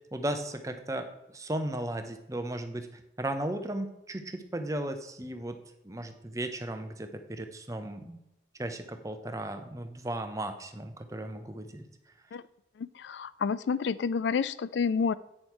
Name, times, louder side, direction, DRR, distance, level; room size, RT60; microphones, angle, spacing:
voice 1, 0.1-8.2 8.6-11.9, right 1 dB, 20° right, 7 dB, 0.7 m, -36 dB
voice 2, 12.8-15.1, left 5 dB, 85° left, 17 dB, 0.4 m, -29 dB
8.6 x 6.3 x 4.5 m, 0.90 s
head